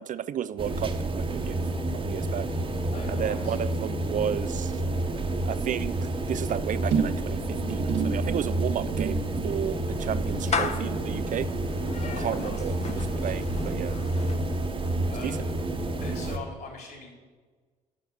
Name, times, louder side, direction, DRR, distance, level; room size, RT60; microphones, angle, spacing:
voice 1, 0.0-1.6 2.0-2.5 3.1-4.7 5.4-7.4 7.7-11.5 12.2-13.9 15.2-15.4, right 9 dB, 45° right, 15 dB, 0.4 m, -33 dB
sound 1, 0.6-16.4, right 2 dB, 30° right, 1.1 m, -29 dB
voice 2, 2.9-3.6 12.0-12.7 14.8-15.5 16.0-17.1, left 3 dB, 55° left, 1 dB, 3.7 m, -41 dB
sound 2, 6.9-13.5 13.8-14.2 14.5-14.6, right 6 dB, 65° right, 1.0 m, -34 dB
Clapping / Meow, 8.8-15.1, left 5 dB, 35° left, 0.9 m, -36 dB
10.5 x 5.7 x 6.4 m, 1.4 s
hypercardioid pair, 55°, 19 cm